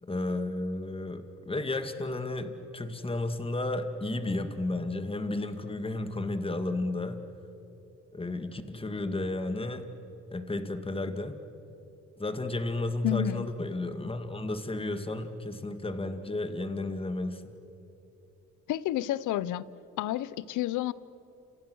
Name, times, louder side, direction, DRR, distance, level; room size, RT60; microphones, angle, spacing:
voice 1, 0.0-7.2 8.1-9.9 10.3-11.3 12.2-17.4, left 2 dB, 20° left, 8 dB, 2.2 m, -33 dB
voice 2, 13.0-13.5 18.7-19.6 20.0-20.9, left 13 dB, 80° left, 19 dB, 0.8 m, -30 dB
30.0 x 28.5 x 6.4 m, 3.0 s
cardioid pair, 90°, 30 cm